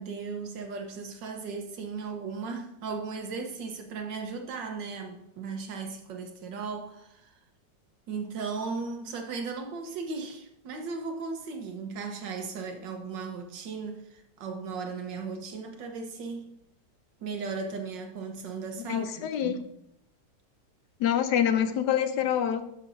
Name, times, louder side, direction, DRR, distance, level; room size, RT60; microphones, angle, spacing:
voice 1, 0.0-7.3 8.1-16.6 17.2-19.6, right 4 dB, 80° right, 1.7 m, -36 dB
voice 2, 18.9-19.5 21.0-22.6, left 9 dB, 75° left, 1.1 m, -26 dB
12.0 x 7.0 x 2.6 m
omnidirectional pair, 2.0 m